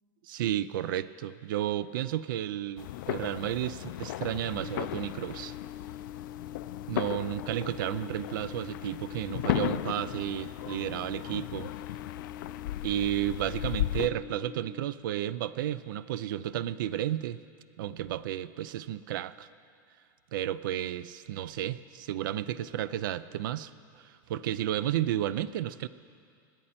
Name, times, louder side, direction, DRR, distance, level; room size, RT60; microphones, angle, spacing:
voice 1, 0.2-5.5 6.9-11.7 12.8-17.4 17.8-19.5 20.3-25.9, right 12 dB, 75° right, 17 dB, 0.5 m, -32 dB
sound 1, 2.8-14.1, left 14 dB, 70° left, 0.4 m, -36 dB
sound 2, 4.6-14.6, left 10 dB, 55° right, 2.1 m, -45 dB
27.0 x 9.8 x 4.3 m, 2.3 s
supercardioid pair, 175°, 11 cm